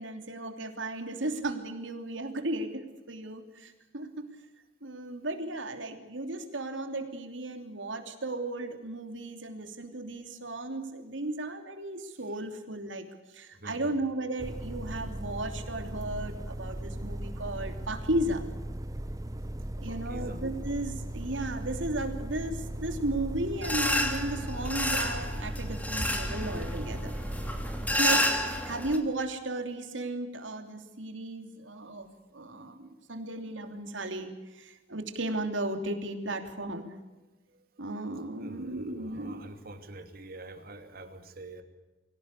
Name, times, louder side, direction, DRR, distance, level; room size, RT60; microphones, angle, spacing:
voice 1, 0.0-2.8 3.1-4.3 4.8-13.0 13.3-18.4 19.8-27.1 28.0-32.1 32.3-36.9 37.8-39.5, right 2 dB, 85° right, 6 dB, 3.0 m, -35 dB
voice 2, 13.5-13.9 19.9-20.4 27.8-28.0 37.8-37.9 38.4-41.6, right 2 dB, 50° right, 7 dB, 2.8 m, -46 dB
sound 1, 14.4-28.0, right 1 dB, 20° right, 0.7 m, -37 dB
sound 2, 23.6-29.0, left 1 dB, 10° left, 2.9 m, -30 dB
24.5 x 17.5 x 8.3 m, 1.1 s
head